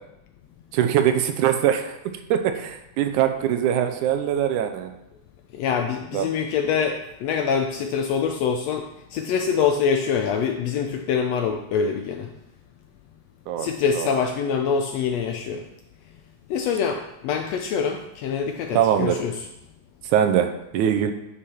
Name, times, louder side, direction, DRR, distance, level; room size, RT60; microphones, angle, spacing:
voice 1, 0.7-2.0 2.3-4.9 6.1-6.3 13.5-13.7 13.9-14.1 18.7-19.2 20.1-21.1, right 10 dB, 90° right, 6 dB, 2.2 m, -22 dB
voice 2, 5.5-8.8 9.1-12.3 13.6-15.6 16.5-19.4, left 6 dB, 80° left, 4 dB, 1.5 m, -25 dB
9.9 x 5.7 x 4.3 m, 0.87 s
omnidirectional pair, 3.5 m